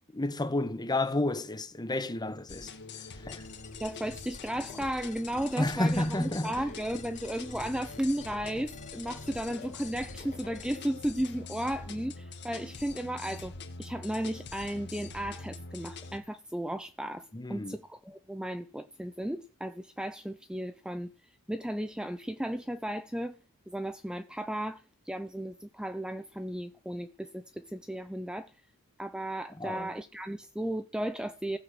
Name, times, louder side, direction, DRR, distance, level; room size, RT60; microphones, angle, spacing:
voice 1, 0.1-2.7 3.3-3.4 5.6-6.5 17.3-17.8 29.6-29.9, left 1 dB, 20° left, 1.2 m, -30 dB
sound 1, 2.5-16.2, left 3 dB, 50° left, 1.9 m, -44 dB
sound 2, 3.3-10.8, left 4 dB, 35° left, 2.5 m, -49 dB
voice 2, 3.8-17.2 17.5-21.1 21.5-23.4 23.7-28.5 29.0-31.6, right 1 dB, 5° right, 0.6 m, -35 dB
15.5 x 7.8 x 6.6 m
head